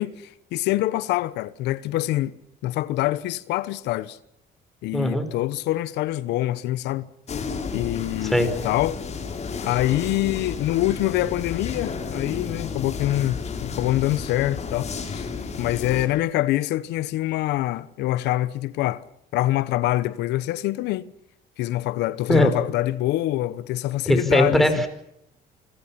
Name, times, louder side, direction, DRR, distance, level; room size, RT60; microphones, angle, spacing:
voice 1, 0.0-2.4 2.6-4.2 4.8-7.1 7.7-9.0 9.6-15.3 15.6-19.0 19.3-21.1 21.6-24.8, left 15 dB, 85° left, 1.1 m, -25 dB
voice 2, 4.9-5.3 8.2-8.5 22.3-22.5 24.1-24.9, left 1 dB, ahead, 5.2 m, -19 dB
sound 1, 7.3-16.1, left 5 dB, 40° left, 6.2 m, -32 dB
27.5 x 25.5 x 5.9 m
cardioid pair, 110°, 17 cm